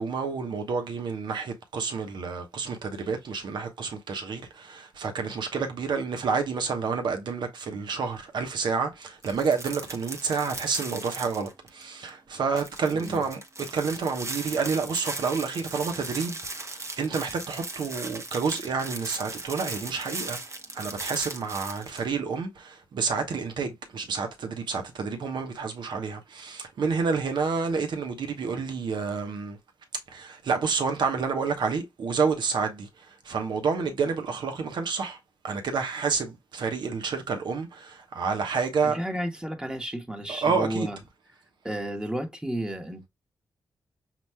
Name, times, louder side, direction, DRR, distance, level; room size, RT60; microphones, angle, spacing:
voice 1, 0.0-13.4 13.7-20.4 20.7-29.6 30.1-35.2 35.4-39.0 40.3-40.9, right 5 dB, 75° right, 1.0 m, -29 dB
sound 1, 9.2-11.8 12.1-12.2 12.6-22.0, right 2 dB, 40° right, 1.0 m, -38 dB
voice 2, 12.9-13.2 38.8-41.0 41.6-43.1, right 1 dB, 10° right, 1.2 m, -32 dB
5.8 x 3.0 x 2.2 m
supercardioid pair, 45°, 8 cm